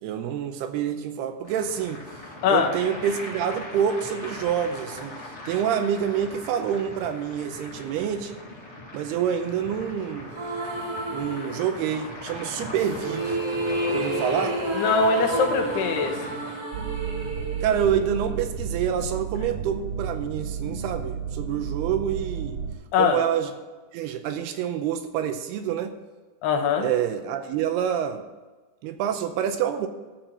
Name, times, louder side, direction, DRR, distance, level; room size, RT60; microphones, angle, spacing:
voice 1, 0.0-2.0 2.5-8.4 8.9-10.3 11.1-13.4 13.9-14.6 17.6-22.6 23.0-23.5 23.9-25.9 26.8-28.2 28.8-29.9, right 9 dB, 80° right, 8 dB, 2.7 m, -27 dB
sound 1, 1.4-16.6, left 1 dB, 60° left, 0.7 m, -40 dB
sound 2, 10.3-12.0 12.7-18.8, right 1 dB, 40° right, 2.0 m, -31 dB
voice 2, 14.7-16.4 22.9-23.2 26.4-26.9, left 5 dB, 75° left, 3 dB, 3.1 m, -22 dB
sound 3, 16.7-22.8, right 6 dB, 65° right, 3.3 m, -32 dB
13.5 x 4.5 x 7.7 m, 1.3 s
omnidirectional pair, 4.8 m